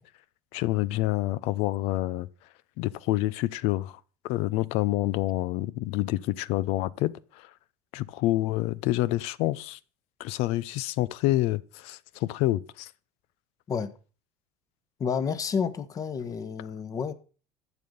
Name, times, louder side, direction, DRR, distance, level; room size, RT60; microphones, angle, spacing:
voice 1, 0.5-2.3 2.8-7.5 7.9-9.8 10.2-12.9, left 16 dB, 65° left, 0.7 m, -27 dB
voice 2, 15.0-17.1, left 6 dB, 30° left, 1.3 m, -30 dB
14.5 x 8.8 x 5.4 m
supercardioid pair, 125°, 11 cm